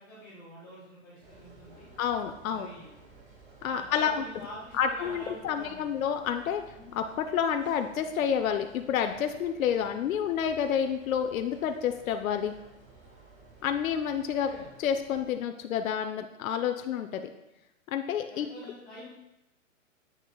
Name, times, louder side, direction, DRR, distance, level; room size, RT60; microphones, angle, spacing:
voice 1, 0.0-1.9 2.5-2.9 3.6-6.0 13.6-13.7 14.4-14.7 18.3-19.1, equal, 10° left, -13 dB, 1.4 m, -46 dB
sound 1, 1.2-15.3, right 2 dB, 25° right, 1.3 m, -54 dB
voice 2, 2.0-2.7 3.6-4.2 4.7-6.6 6.9-12.5 13.6-14.5 14.8-17.3 17.9-18.5, left 8 dB, 80° left, 6 dB, 0.6 m, -29 dB
8.6 x 6.1 x 2.2 m, 0.93 s
hypercardioid pair, 170°, 40 cm